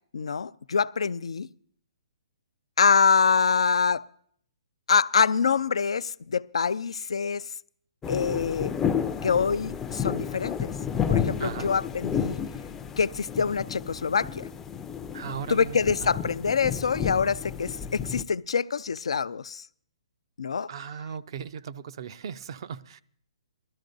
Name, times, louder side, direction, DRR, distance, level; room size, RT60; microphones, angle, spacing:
voice 1, 0.1-1.5 2.8-4.0 4.9-7.4 8.1-8.7 9.2-10.7 11.1-12.4 13.0-14.5 15.5-19.6 20.4-20.7, left 6 dB, 75° left, 0.4 m, -25 dB
sound 1, 8.0-18.2, left 7 dB, 15° left, 0.5 m, -31 dB
voice 2, 11.4-11.7 15.1-16.2 20.7-23.0, right 7 dB, 55° right, 0.5 m, -37 dB
19.5 x 13.0 x 2.6 m
hypercardioid pair, 140°, 3 cm